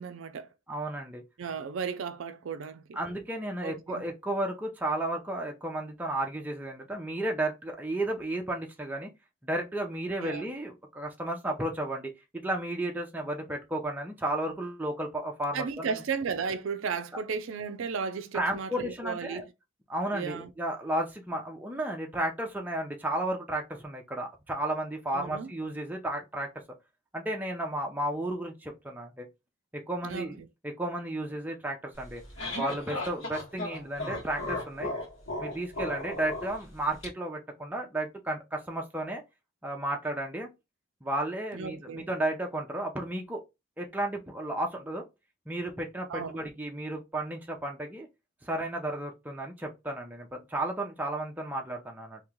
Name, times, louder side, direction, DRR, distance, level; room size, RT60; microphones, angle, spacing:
voice 1, 0.0-0.5 1.4-3.0 3.6-4.0 10.2-10.4 15.5-19.5 20.1-20.5 25.1-25.5 30.0-30.5 41.5-42.1 46.1-46.4, right 6 dB, 75° right, 0.4 m, -35 dB
voice 2, 0.7-1.2 3.0-9.1 9.4-16.0 18.3-19.4 19.9-26.5 27.1-29.3 29.7-32.2 32.5-34.9 35.4-39.2 39.6-40.5 41.0-43.4 43.8-45.0 45.5-48.1 48.4-52.2, right 1 dB, 10° right, 0.6 m, -33 dB
sound 1, 32.0-37.1, left 2 dB, 60° left, 1.6 m, -36 dB
3.0 x 2.9 x 3.6 m
head